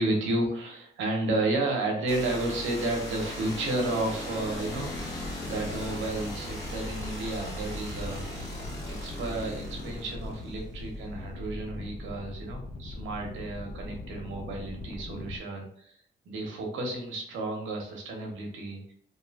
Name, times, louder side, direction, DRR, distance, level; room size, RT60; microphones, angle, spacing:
voice 1, 0.0-4.9 5.4-16.0 16.2-18.8, right 2 dB, 75° right, 1 dB, 0.8 m, -32 dB
sound 1, 2.1-10.8, left 1 dB, 55° left, 1.0 m, -38 dB
sound 2, 4.4-15.4, left 2 dB, 25° left, 0.4 m, -41 dB
sound 3, 4.4-10.1, right 3 dB, 45° right, 0.4 m, -52 dB
2.7 x 2.4 x 2.2 m, 0.63 s
cardioid pair, 90°, 20 cm